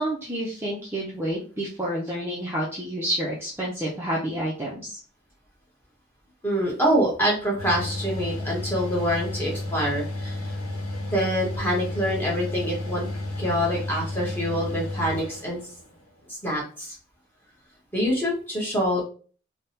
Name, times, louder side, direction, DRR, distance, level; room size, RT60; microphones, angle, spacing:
voice 1, 0.0-5.0, right 1 dB, 10° right, -5 dB, 0.4 m, -29 dB
voice 2, 6.4-10.6 11.1-13.1 13.4-15.6 16.3-17.0 17.9-19.0, equal, 10° left, -3 dB, 0.9 m, -25 dB
Mechanical fan, 7.6-16.0, left 2 dB, 80° left, 0.9 m, -32 dB
3.3 x 2.0 x 2.8 m, 0.39 s
head